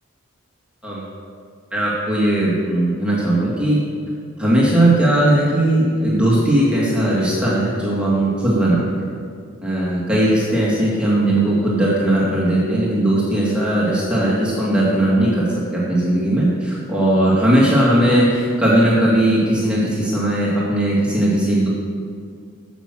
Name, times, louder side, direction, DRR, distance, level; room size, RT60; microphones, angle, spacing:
voice 1, 1.7-3.8 4.4-8.8 9.6-15.5 15.7-21.7, right 1 dB, 5° right, -7 dB, 2.2 m, -18 dB
12.5 x 7.5 x 6.3 m, 2.2 s
head